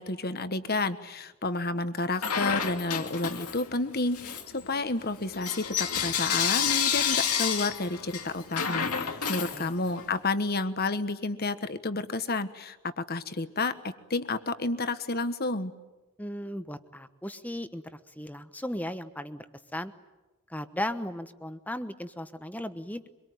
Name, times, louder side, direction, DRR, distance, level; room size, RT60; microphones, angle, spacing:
voice 1, 0.0-15.7, left 3 dB, 45° left, 11 dB, 1.3 m, -30 dB
Bell / Coin (dropping), 2.2-3.7 4.1-10.1, left 7 dB, 90° left, 2.4 m, -30 dB
voice 2, 16.2-19.5 19.7-19.9 20.5-23.1, left 1 dB, 5° left, 10 dB, 1.1 m, -36 dB
24.5 x 23.0 x 9.4 m, 1.1 s
head